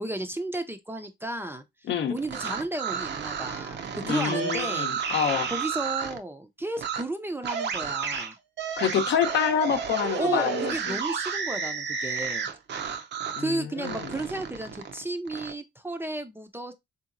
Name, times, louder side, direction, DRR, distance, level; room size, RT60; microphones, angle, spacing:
voice 1, 0.0-1.6 2.1-3.8 4.1-5.1 5.5-8.4 10.1-12.5 13.4-16.7, right 2 dB, 10° right, 0.5 m, -33 dB
voice 2, 1.9-2.2 4.0-5.5 8.8-11.0 13.4-14.1, left 7 dB, 65° left, 0.7 m, -27 dB
sound 1, 2.2-6.2 6.8-7.0 7.4-13.5 13.8-15.5, right 6 dB, 65° right, 0.6 m, -31 dB
3.7 x 2.9 x 2.5 m
cardioid pair, 90°, 20 cm